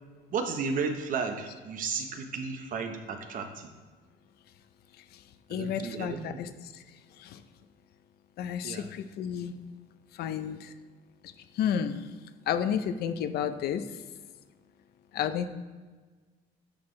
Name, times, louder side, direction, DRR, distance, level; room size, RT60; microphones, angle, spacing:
voice 1, 0.3-3.7 5.5-6.4 8.6-8.9, right 5 dB, 55° right, 6 dB, 0.9 m, -33 dB
voice 2, 5.5-6.5 7.2-7.4 8.4-9.6 10.2-10.7 11.6-12.0 12.5-13.8 15.1-15.5, left 8 dB, 70° left, 10 dB, 0.6 m, -31 dB
9.4 x 4.4 x 3.2 m, 1.4 s
cardioid pair, 110°, 17 cm